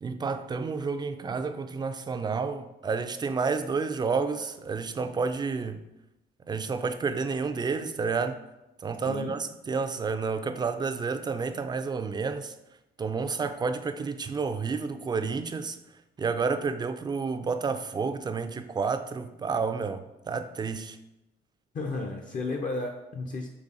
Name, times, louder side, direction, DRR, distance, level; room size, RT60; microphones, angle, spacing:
voice 1, 0.0-5.8 6.5-8.4 8.8-12.5 13.0-15.8 16.2-21.0, right 5 dB, 20° right, 0.3 m, -30 dB
voice 2, 9.0-9.3 21.7-23.5, left 3 dB, 40° left, 0.5 m, -33 dB
4.0 x 3.2 x 3.7 m
cardioid pair, 90°, 20 cm